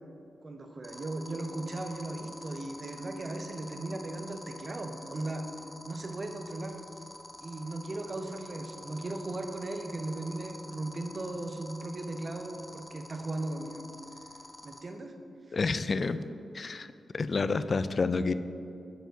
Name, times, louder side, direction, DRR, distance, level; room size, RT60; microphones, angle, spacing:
voice 1, 0.4-5.5 5.9-6.8 7.4-13.9 14.6-15.1 15.5-15.6, right 2 dB, 40° right, 5 dB, 0.6 m, -37 dB
sound 1, 0.8-14.8, left 1 dB, 15° left, 0.8 m, -46 dB
voice 2, 15.5-16.2 16.5-18.3, left 4 dB, 45° left, 13 dB, 0.3 m, -29 dB
9.2 x 4.5 x 4.0 m, 2.6 s
cardioid pair, 85°, 0 cm